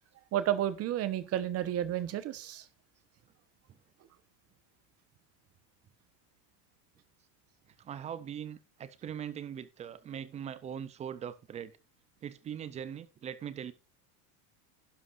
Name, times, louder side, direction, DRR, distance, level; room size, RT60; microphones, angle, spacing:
voice 1, 0.3-2.6, right 11 dB, 30° right, 1.1 m, -31 dB
voice 2, 7.8-11.7 12.2-13.7, right 8 dB, 15° right, 0.4 m, -41 dB
11.5 x 11.0 x 2.5 m
supercardioid pair, 160°, 46 cm